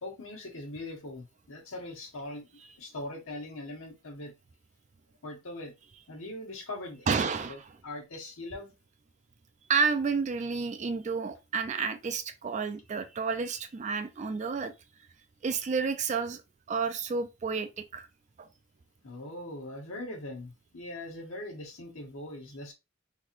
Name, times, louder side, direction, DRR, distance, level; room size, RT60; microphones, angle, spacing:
voice 1, 0.0-4.3 5.2-5.7 6.1-8.7 19.0-22.7, left 1 dB, 85° left, 1.3 m, -41 dB
voice 2, 7.1-7.6 9.7-14.7 15.4-16.4 16.7-18.1 18.4-18.5, right 5 dB, 35° right, 0.3 m, -30 dB
3.9 x 3.0 x 2.5 m
head